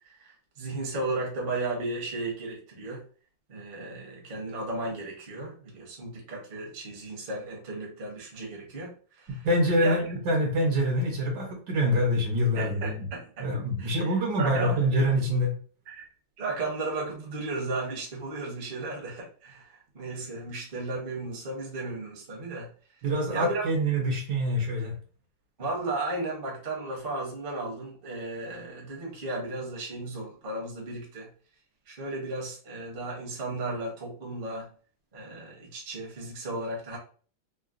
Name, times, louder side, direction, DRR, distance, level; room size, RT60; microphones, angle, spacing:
voice 1, 0.0-3.0 3.5-9.5 9.8-10.0 12.5-13.5 13.8-14.9 15.9-16.0 16.4-22.7 23.3-23.6 25.6-31.3 31.9-34.7 35.1-37.0, right 2 dB, 40° right, -2 dB, 0.8 m, -35 dB
voice 2, 9.3-13.1 13.4-15.5 23.0-24.9, equal, 70° right, 1 dB, 1.3 m, -25 dB
3.7 x 2.1 x 2.4 m, 0.40 s
omnidirectional pair, 2.1 m